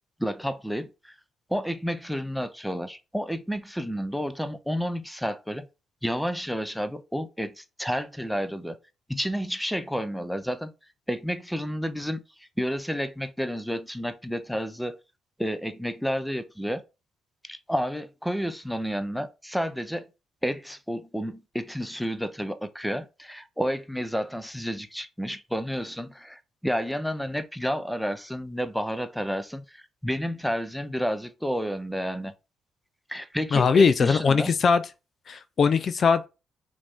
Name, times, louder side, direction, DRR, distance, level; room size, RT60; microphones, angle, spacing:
voice 1, 0.2-1.1 1.5-5.7 6.0-8.8 9.1-10.7 11.1-15.0 15.4-16.8 17.4-20.0 20.4-32.3 33.1-34.5, equal, ahead, 0.6 m, -30 dB
voice 2, 33.5-34.8 35.3-36.3, left 5 dB, 50° left, 0.4 m, -20 dB
4.9 x 2.7 x 3.6 m
cardioid pair, 90°, 0 cm